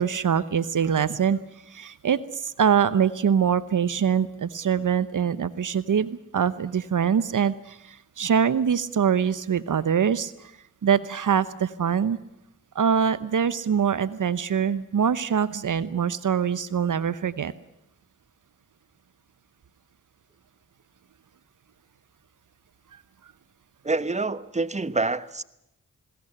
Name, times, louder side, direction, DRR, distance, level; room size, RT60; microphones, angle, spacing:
voice 1, 0.0-1.4 1.7-10.5 10.8-12.2 12.7-17.5, right 7 dB, 65° right, 16 dB, 1.0 m, -24 dB
voice 2, 23.8-25.4, right 3 dB, 20° right, 15 dB, 1.2 m, -27 dB
21.0 x 18.0 x 10.0 m, 0.84 s
cardioid pair, 45°, 33 cm